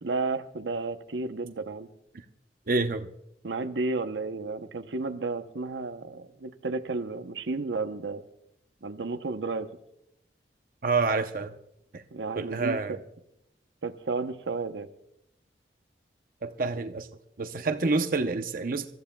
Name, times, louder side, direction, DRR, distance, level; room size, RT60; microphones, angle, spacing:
voice 1, 0.0-1.9 3.4-8.2 8.8-9.7 12.1-13.0 13.8-14.9, right 3 dB, 90° right, 8 dB, 0.8 m, -32 dB
voice 2, 2.7-3.1 10.8-11.5 11.9-12.0 12.4-13.0 16.4-17.1 17.4-18.8, right 3 dB, 50° right, 6 dB, 0.7 m, -27 dB
28.0 x 14.0 x 2.2 m, 0.79 s
head